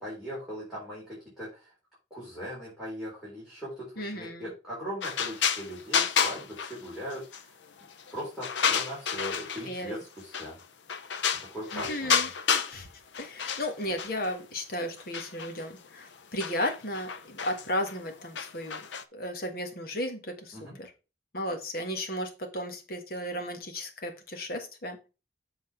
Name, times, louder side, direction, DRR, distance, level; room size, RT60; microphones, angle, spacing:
voice 1, 0.0-1.7 2.1-7.5 8.1-10.6 11.4-12.3 20.5-20.7, equal, ahead, -9 dB, 4.2 m, -39 dB
voice 2, 4.0-4.5 9.7-10.0 11.7-12.9 13.2-18.9 19.1-20.9 21.3-25.0, left 1 dB, 55° left, 4 dB, 1.6 m, -34 dB
sound 1, 5.0-7.4 7.8-9.8 10.3-10.6 10.9-12.8 13.1-14.4 15.0-19.0, left 7 dB, 80° left, 0.7 m, -30 dB
7.9 x 4.0 x 5.1 m, 0.30 s
head